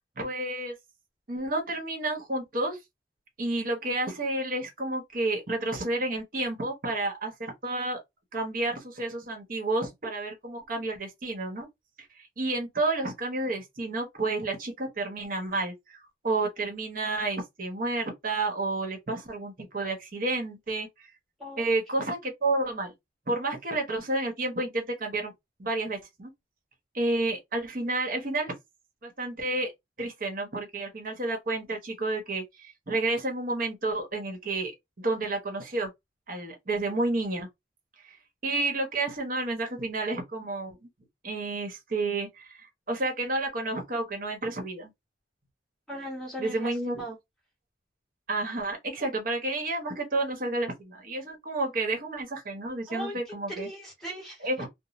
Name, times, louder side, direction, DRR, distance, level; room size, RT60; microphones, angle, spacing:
voice 1, 0.2-0.7 1.3-2.8 3.4-8.0 8.3-11.7 12.1-21.1 21.6-22.9 23.3-25.3 25.6-26.3 26.9-28.5 29.0-29.7 30.0-34.7 35.0-35.9 36.3-37.5 38.0-38.2 38.4-40.9 41.2-44.9 46.4-47.0 48.3-53.7 54.4-54.7, right 2 dB, 50° right, 1.0 m, -30 dB
voice 2, 45.9-47.2 52.9-53.2 53.5-54.5, right 1 dB, ahead, 1.3 m, -38 dB
2.6 x 2.0 x 3.0 m
head